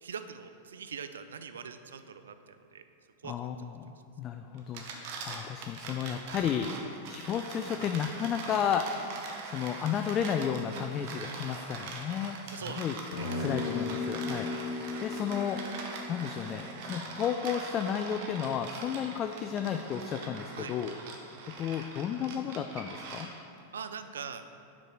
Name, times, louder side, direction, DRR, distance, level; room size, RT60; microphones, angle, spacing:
voice 1, 0.0-2.8 3.2-3.3 12.5-12.9 13.2-13.3 14.5-14.7 20.6-20.7 23.7-24.5, right 6 dB, 85° right, 10 dB, 0.4 m, -42 dB
voice 2, 3.2-8.9 9.4-13.0 13.4-20.9 21.2-23.3, left 8 dB, 35° left, 6 dB, 0.3 m, -33 dB
sound 1, 4.6-23.6, right 4 dB, 55° right, 0.9 m, -42 dB
sound 2, 13.1-17.7, left 4 dB, 70° left, 1.1 m, -37 dB
5.0 x 4.7 x 5.8 m, 2.7 s
hypercardioid pair, 105°, 0 cm